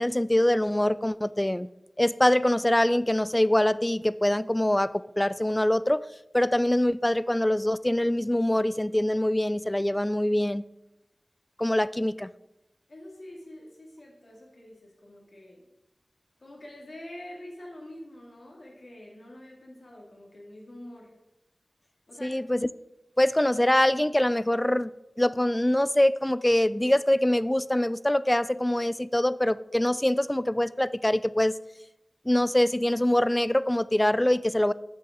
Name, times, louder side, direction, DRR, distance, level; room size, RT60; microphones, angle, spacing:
voice 1, 0.0-1.7 2.0-6.1 6.3-10.6 11.6-12.3 22.2-22.7 23.2-24.9 25.2-31.6 32.3-34.7, left 1 dB, 15° left, 18 dB, 0.3 m, -24 dB
voice 2, 12.9-15.6 16.4-21.1 22.1-22.4, left 1 dB, 70° left, -1 dB, 2.4 m, -46 dB
7.1 x 6.3 x 6.1 m, 0.92 s
wide cardioid pair, 70°, 0 cm